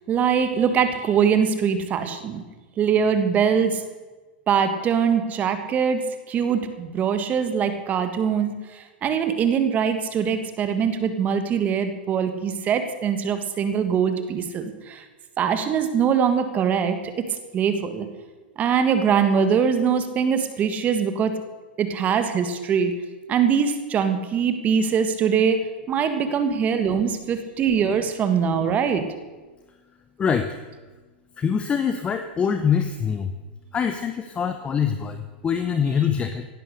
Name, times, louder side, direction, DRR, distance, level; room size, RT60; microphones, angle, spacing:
voice 1, 0.1-2.4 2.8-3.8 4.5-15.0 15.4-18.1 18.6-21.4 21.8-22.9 23.3-25.6 25.9-29.0, right 7 dB, 30° right, 9 dB, 1.6 m, -22 dB
voice 2, 30.2-30.6 31.4-33.3 33.7-36.5, left 7 dB, 20° left, 8 dB, 0.9 m, -24 dB
16.5 x 11.0 x 6.6 m, 1.3 s
hypercardioid pair, 130°, 6 cm